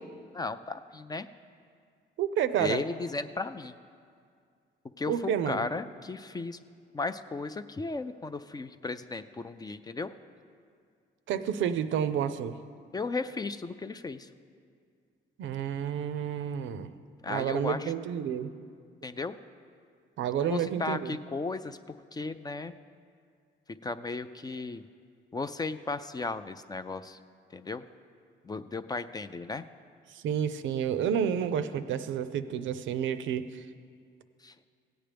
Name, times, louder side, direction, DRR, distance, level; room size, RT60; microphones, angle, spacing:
voice 1, 0.3-1.3 2.6-3.7 5.0-6.6 6.9-10.1 12.9-14.3 17.2-17.9 19.0-19.4 20.4-21.8 22.1-22.7 23.8-24.8 25.3-27.2 27.5-27.8 28.4-29.6 34.4-34.5, left 3 dB, 20° left, 11 dB, 0.3 m, -35 dB
voice 2, 2.2-2.8 5.1-5.7 11.3-12.5 15.4-16.9 17.3-18.5 20.2-21.2 30.1-33.6, right 8 dB, 75° right, 11 dB, 0.5 m, -30 dB
16.5 x 8.9 x 3.4 m, 2.2 s
cardioid pair, 90°, 20 cm